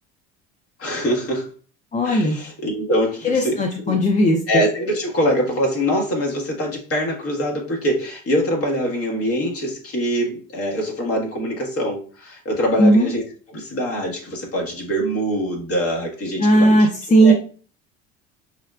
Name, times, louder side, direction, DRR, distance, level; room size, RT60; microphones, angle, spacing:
voice 1, 0.8-1.5 2.0-4.0 4.5-13.2 13.5-16.9 17.2-17.3, equal, 45° left, 0 dB, 1.5 m, -24 dB
voice 2, 1.9-2.4 3.2-4.4 12.8-13.1 16.4-17.3, right 1 dB, 20° left, 2 dB, 0.5 m, -16 dB
5.6 x 2.1 x 2.4 m, 0.39 s
supercardioid pair, 80°, 33 cm